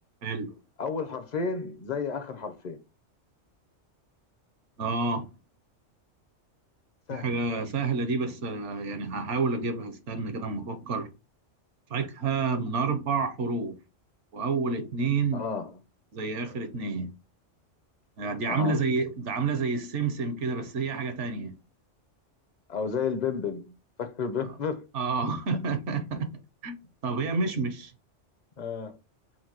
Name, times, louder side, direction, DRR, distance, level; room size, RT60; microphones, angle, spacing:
voice 1, 0.2-0.6 4.8-5.3 7.1-11.1 11.9-13.8 14.3-15.4 16.1-17.1 18.2-21.5 24.4-24.5 24.9-26.3 26.6-26.8 27.0-27.9, right 4 dB, 75° right, 1.1 m, -29 dB
voice 2, 0.8-2.8 7.1-7.4 15.3-15.7 18.5-18.8 22.7-24.8 28.6-28.9, left 5 dB, 45° left, 0.7 m, -32 dB
5.8 x 2.6 x 2.9 m
omnidirectional pair, 1.2 m